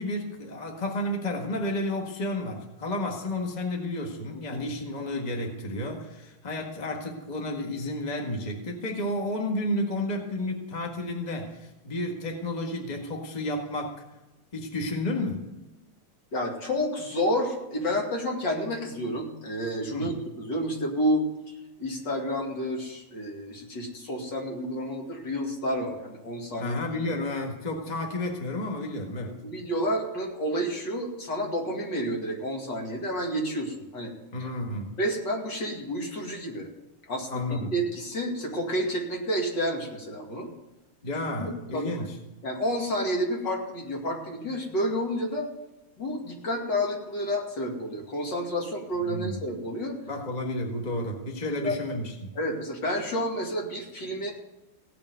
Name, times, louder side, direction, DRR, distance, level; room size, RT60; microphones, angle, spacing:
voice 1, 0.0-14.0 14.5-15.5 19.9-20.2 26.6-29.4 34.3-34.9 37.3-37.8 41.0-42.2 49.0-49.4 50.1-52.3, left 1 dB, 20° left, 1 dB, 1.7 m, -31 dB
voice 2, 16.3-21.3 21.8-26.7 27.1-27.2 29.3-34.1 35.0-36.7 37.1-40.5 41.4-41.9 42.4-45.5 46.0-50.0 51.4-51.8 52.4-54.3, equal, 55° left, 0 dB, 3.0 m, -30 dB
16.5 x 7.0 x 9.2 m, 1.0 s
omnidirectional pair, 2.4 m